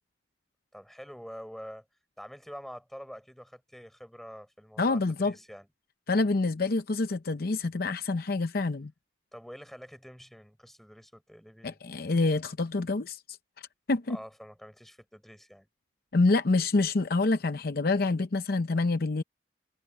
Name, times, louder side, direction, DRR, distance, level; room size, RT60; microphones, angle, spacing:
voice 1, 0.7-1.9 2.2-5.7 9.3-11.8 14.1-15.7, equal, ahead, 4.8 m, -46 dB
voice 2, 4.8-5.3 6.1-8.9 11.6-13.4 13.9-14.2 16.1-19.2, left 3 dB, 55° left, 0.7 m, -27 dB
head